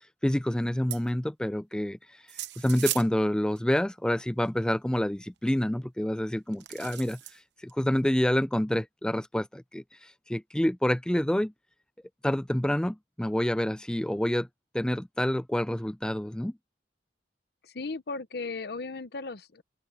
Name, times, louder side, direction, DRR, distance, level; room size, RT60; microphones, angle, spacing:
voice 1, 0.2-2.0 2.6-7.2 7.6-11.5 12.2-14.5 14.7-16.5, left 1 dB, 5° left, 0.3 m, -27 dB
sound 1, 0.9-1.1 2.3-3.1 3.6-3.7 4.4-4.5 6.5-7.4 7.7-7.8, right 14 dB, 80° right, 1.0 m, -36 dB
voice 2, 17.6-19.6, left 3 dB, 65° left, 0.9 m, -36 dB
open air
head